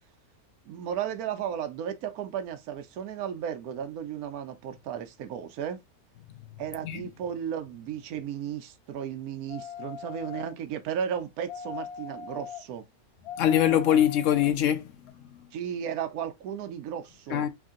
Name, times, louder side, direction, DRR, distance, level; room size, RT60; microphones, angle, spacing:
voice 1, 0.7-5.8 6.6-12.9 15.5-17.5, right 9 dB, 75° right, 1.1 m, -34 dB
sound 1, 9.5-10.5 11.5-12.6 13.3-14.5 15.1-15.2, left 8 dB, 80° left, 1.3 m, -40 dB
voice 2, 13.4-14.9 17.3-17.5, left 10 dB, 65° left, 0.9 m, -23 dB
3.5 x 2.6 x 3.7 m
omnidirectional pair, 1.6 m